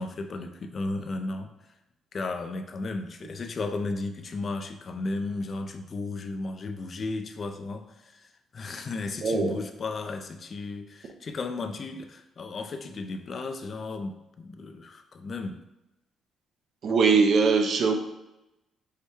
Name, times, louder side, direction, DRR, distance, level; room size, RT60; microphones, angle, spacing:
voice 1, 0.0-1.5 2.1-15.6, left 3 dB, 45° left, 6 dB, 0.5 m, -34 dB
voice 2, 9.2-9.6 16.8-17.9, right 5 dB, 60° right, 4 dB, 0.6 m, -21 dB
4.8 x 2.2 x 4.4 m, 0.93 s
cardioid pair, 85°, 0 cm